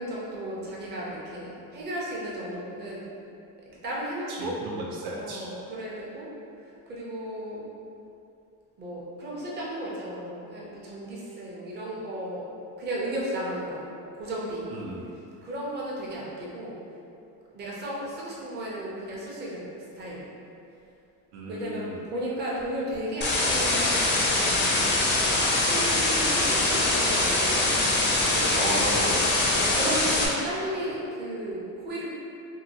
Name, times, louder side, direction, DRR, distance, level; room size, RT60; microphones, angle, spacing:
voice 1, 0.0-3.0 3.8-4.6 5.1-6.3 6.9-7.6 8.8-12.5 12.8-13.9 14.1-14.7 15.4-16.7 17.5-19.7 20.0-20.3 21.5-27.7 28.2-28.6 29.5-32.0, right 1 dB, 25° right, -6 dB, 0.6 m, -34 dB
voice 2, 4.3-5.5 14.7-15.1 21.3-21.9 28.6-29.2, right 1 dB, 70° right, -3 dB, 0.6 m, -34 dB
sound 1, 23.2-30.3, left 2 dB, 30° left, 0.4 m, -23 dB
2.8 x 2.6 x 2.7 m, 2.6 s
cardioid pair, 125°, 39 cm